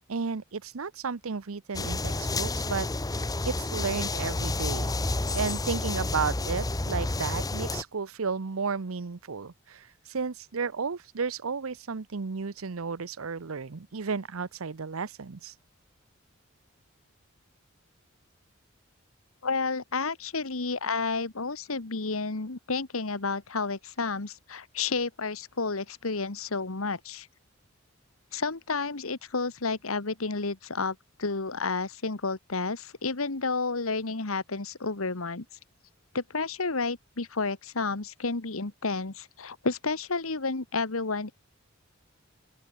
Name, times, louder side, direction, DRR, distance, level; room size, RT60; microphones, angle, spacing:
voice 1, 0.1-2.9 3.5-4.9 5.3-15.5, right 5 dB, 80° right, 0.8 m, -33 dB
sound 1, 1.7-7.8, left 2 dB, 15° left, 0.8 m, -30 dB
voice 2, 19.4-27.3 28.3-35.4 36.1-41.3, left 4 dB, 80° left, 1.6 m, -31 dB
open air
head